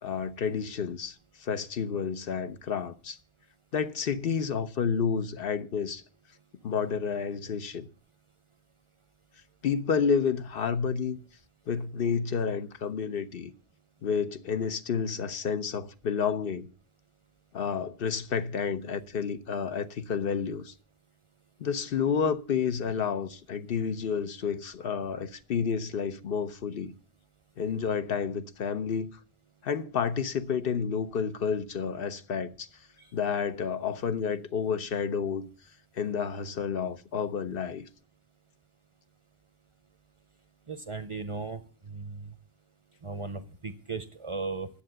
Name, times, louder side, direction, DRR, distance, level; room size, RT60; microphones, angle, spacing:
voice 1, 0.0-3.2 3.7-6.0 6.6-7.9 9.6-11.2 11.7-13.5 14.0-16.7 17.5-20.7 21.6-26.9 27.6-29.2 29.6-32.7 33.1-35.5 36.0-37.9, left 6 dB, 65° left, 0.9 m, -30 dB
voice 2, 40.7-41.6 41.9-42.3 43.0-44.7, right 4 dB, 35° right, 0.7 m, -36 dB
10.0 x 7.5 x 7.6 m
omnidirectional pair, 1.0 m